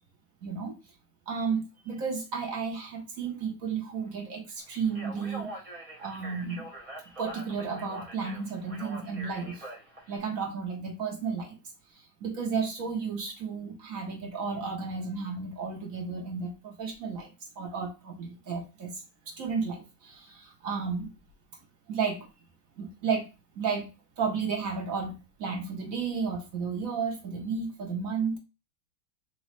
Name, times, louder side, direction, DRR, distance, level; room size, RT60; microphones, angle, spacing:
voice 1, 0.4-0.8 1.3-5.5 6.0-6.7 7.2-9.7 10.1-11.6 12.2-17.3 17.6-21.1 21.9-22.3 22.8-23.3 23.6-23.9 24.2-28.4, right 5 dB, 55° right, 2 dB, 1.0 m, -33 dB
Speech, 4.8-10.2, right 1 dB, 25° right, 0.8 m, -43 dB
4.0 x 3.0 x 3.1 m, 0.28 s
omnidirectional pair, 2.2 m